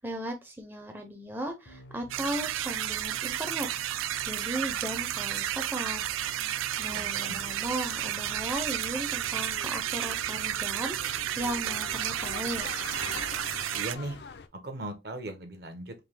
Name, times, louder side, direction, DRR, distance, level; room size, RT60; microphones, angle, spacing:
voice 1, 0.0-3.7 4.3-6.0 6.8-12.7, right 1 dB, 10° right, 0.5 m, -36 dB
sound 1, 1.7-13.6, left 1 dB, 75° left, 0.7 m, -52 dB
sound 2, 2.1-14.0, right 12 dB, 90° right, 0.3 m, -32 dB
voice 2, 6.9-7.3 13.7-14.2 14.6-15.9, right 1 dB, 55° right, 0.7 m, -38 dB
sound 3, 7.2-14.5, left 5 dB, 55° left, 0.4 m, -45 dB
3.8 x 2.6 x 3.3 m
head